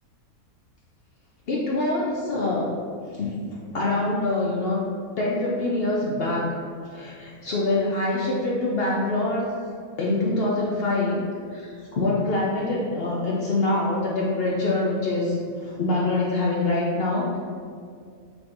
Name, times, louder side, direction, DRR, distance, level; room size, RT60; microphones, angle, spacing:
voice 1, 1.5-2.7 3.1-3.4 3.7-4.9 5.2-6.5 6.9-9.5 10.0-11.2 11.5-11.7 11.9-15.4 15.6-17.4, left 2 dB, 65° left, -4 dB, 0.6 m, -24 dB
4.4 x 4.2 x 2.5 m, 2.1 s
omnidirectional pair, 1.6 m